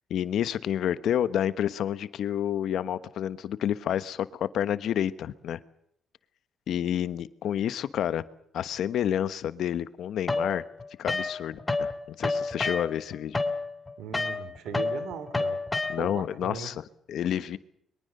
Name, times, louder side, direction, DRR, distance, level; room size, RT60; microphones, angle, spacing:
voice 1, 0.1-5.6 6.7-8.2 8.5-10.6 11.0-11.9 12.2-13.4 15.9-17.6, left 10 dB, 70° left, 15 dB, 1.2 m, -29 dB
sound 1, 10.3-11.9 12.2-16.3, left 3 dB, 20° left, 3.0 m, -29 dB
voice 2, 14.0-15.6 16.0-16.7, right 7 dB, 85° right, 13 dB, 3.0 m, -38 dB
23.5 x 23.0 x 6.7 m, 0.70 s
cardioid pair, 90°, 0 cm